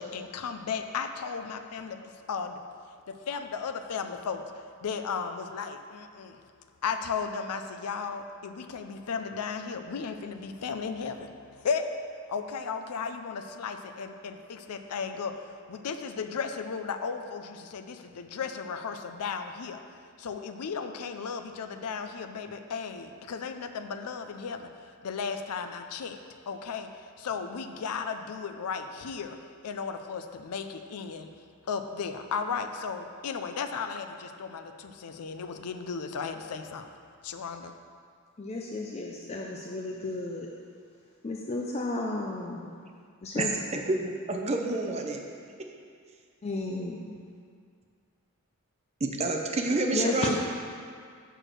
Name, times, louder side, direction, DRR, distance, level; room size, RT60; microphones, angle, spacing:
voice 1, 0.0-2.0 2.3-2.6 3.1-4.5 4.8-6.4 6.8-11.9 12.3-19.8 20.2-24.7 25.0-26.2 26.5-31.3 31.7-36.9 37.2-37.8, left 5 dB, 90° left, 7 dB, 0.5 m, -35 dB
voice 2, 38.4-40.5 41.2-42.9 43.2-43.5 46.4-47.1 49.9-50.4, left 2 dB, 30° left, -1 dB, 0.4 m, -33 dB
voice 3, 43.7-45.2 49.0-50.4, right 2 dB, 30° right, 2 dB, 0.6 m, -28 dB
6.2 x 4.5 x 6.5 m, 2.2 s
head